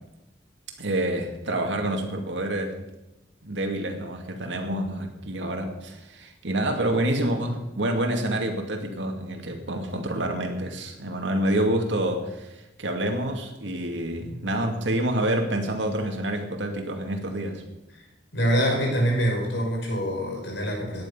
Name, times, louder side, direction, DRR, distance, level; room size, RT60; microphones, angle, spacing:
voice 1, 0.8-2.8 3.4-17.6, right 1 dB, 85° right, 3 dB, 2.3 m, -27 dB
voice 2, 18.3-21.0, equal, 70° left, -1 dB, 5.0 m, -25 dB
17.5 x 10.5 x 5.7 m, 0.99 s
head